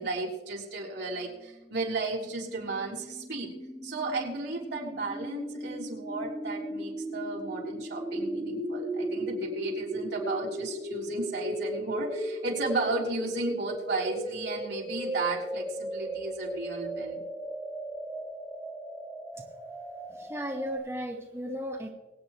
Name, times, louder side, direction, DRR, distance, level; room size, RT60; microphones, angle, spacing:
voice 1, 0.0-3.5 3.8-17.2, right 3 dB, 75° right, -3 dB, 3.5 m, -34 dB
sound 1, 1.6-20.8, right 1 dB, 5° left, 1.8 m, -36 dB
voice 2, 20.1-21.9, equal, 15° right, 0 dB, 1.2 m, -35 dB
24.0 x 8.9 x 3.0 m, 1.1 s
head